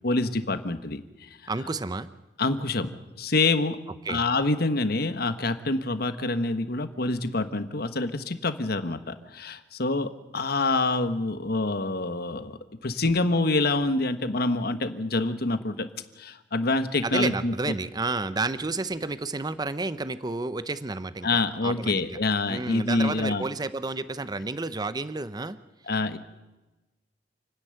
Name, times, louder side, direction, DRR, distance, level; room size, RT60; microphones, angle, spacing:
voice 1, 0.0-1.3 2.4-2.9 3.2-3.8 4.1-12.6 12.8-15.9 16.2-17.5 21.2-23.5 25.9-26.2, left 2 dB, 60° left, 10 dB, 1.3 m, -26 dB
voice 2, 1.5-2.1 4.0-4.2 17.0-22.2 22.5-25.6, right 3 dB, 25° right, 14 dB, 0.6 m, -31 dB
28.5 x 10.0 x 9.1 m, 1.1 s
head